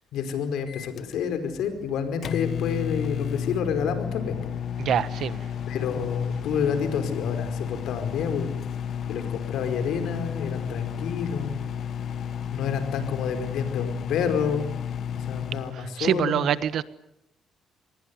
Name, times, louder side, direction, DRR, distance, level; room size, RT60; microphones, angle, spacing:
voice 1, 0.1-4.5 5.7-8.5 9.1-11.5 12.5-14.7 15.1-16.5, left 7 dB, 85° left, 4.8 m, -29 dB
Microwave oven, 0.7-15.8, left 8 dB, 65° left, 1.1 m, -32 dB
voice 2, 4.8-5.5 15.7-16.8, right 9 dB, 70° right, 1.3 m, -25 dB
26.5 x 20.5 x 9.6 m
cardioid pair, 90°, 0 cm